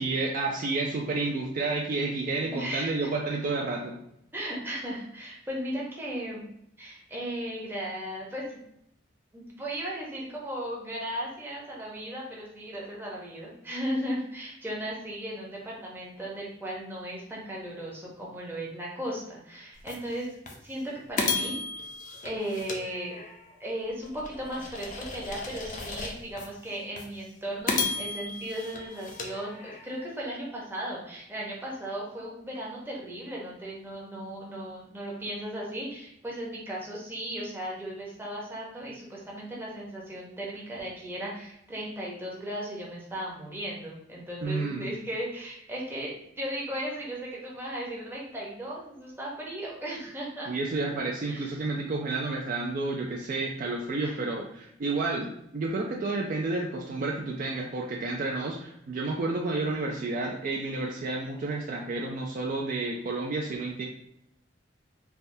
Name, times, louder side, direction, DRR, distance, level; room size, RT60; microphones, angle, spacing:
voice 1, 0.0-4.0 44.4-44.9 50.5-55.3 55.5-63.9, right 3 dB, 45° right, 0 dB, 0.3 m, -30 dB
voice 2, 2.4-3.1 4.3-6.5 6.8-8.6 9.3-20.3 20.6-21.6 22.2-23.2 23.6-50.5 51.3-51.5 54.0-54.2, equal, 10° right, -4 dB, 0.7 m, -36 dB
sound 1, 19.9-20.0 20.5-20.6 21.2-23.5 24.0-26.5 27.0-27.1 27.7-30.0, left 4 dB, 45° left, 0.4 m, -34 dB
3.3 x 2.2 x 2.6 m, 0.77 s
head